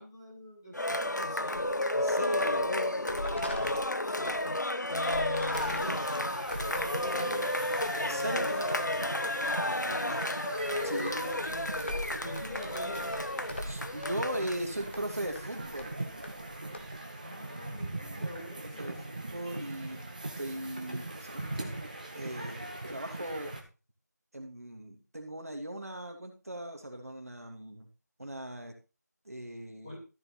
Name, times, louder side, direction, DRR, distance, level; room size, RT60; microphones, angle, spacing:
voice 1, 0.0-1.6 4.0-4.6 4.9-6.3 6.7-9.1 9.7-10.2 11.4-11.8 12.2-13.1 17.2-19.0 29.8-30.0, left 1 dB, 15° left, -6 dB, 2.8 m, -44 dB
Cheering, 0.7-14.6, left 1 dB, 80° left, 0.9 m, -32 dB
sound 1, 1.5-2.0 2.4-2.7 3.0-4.4 5.0-7.3 7.7-7.9 8.3-9.1 9.4-9.6 9.9-10.1 10.7-17.0, left 1 dB, 40° left, 1.6 m, -42 dB
voice 2, 1.9-3.9 8.0-8.7 9.6-10.2 10.8-11.5 13.6-16.2 18.4-18.5 18.8-20.0 20.4-21.7 22.1-23.6 24.3-27.9 28.2-28.8 29.2-30.0, right 1 dB, 55° right, 4 dB, 2.7 m, -39 dB
sound 2, 5.5-23.6, right 2 dB, 25° right, 1.4 m, -41 dB
14.0 x 6.7 x 4.3 m, 0.31 s
figure-of-eight pair, 170°, 10 cm